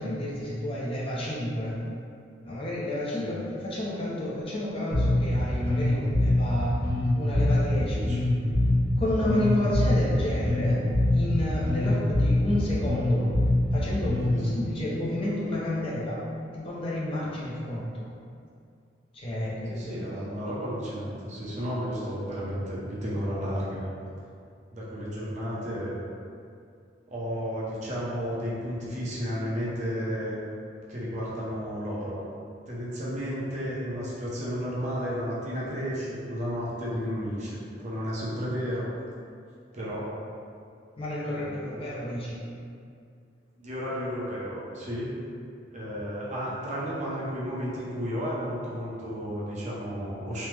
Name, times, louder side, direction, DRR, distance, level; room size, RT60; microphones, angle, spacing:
voice 1, 0.0-1.8 2.4-6.8 7.1-7.9 9.0-10.8 11.1-13.3 13.7-16.2 16.5-18.1 19.1-19.9 41.0-42.4, left 1 dB, 30° left, -6 dB, 0.4 m, -30 dB
Bass guitar, 4.9-14.5, left 1 dB, 70° right, 0.9 m, -25 dB
voice 2, 7.8-8.2 14.3-14.4 19.7-23.9 24.7-26.0 27.1-30.4 30.9-32.2 32.7-38.9 39.7-40.1 41.3-42.1 43.6-45.1 45.7-50.5, equal, 40° right, -7 dB, 0.6 m, -33 dB
3.1 x 2.0 x 3.2 m, 2.4 s
head